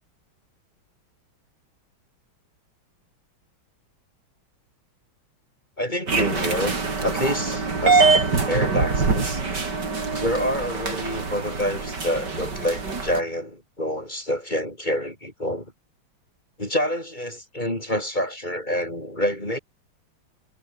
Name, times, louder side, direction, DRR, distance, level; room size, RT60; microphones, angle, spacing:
voice 1, 5.8-6.8 7.0-8.1 8.5-9.4 10.2-15.7 16.6-19.6, equal, 20° left, 6.2 m, -27 dB
sound 1, 6.1-13.2, right 4 dB, 50° right, 4.2 m, -24 dB
omnidirectional pair, 2.3 m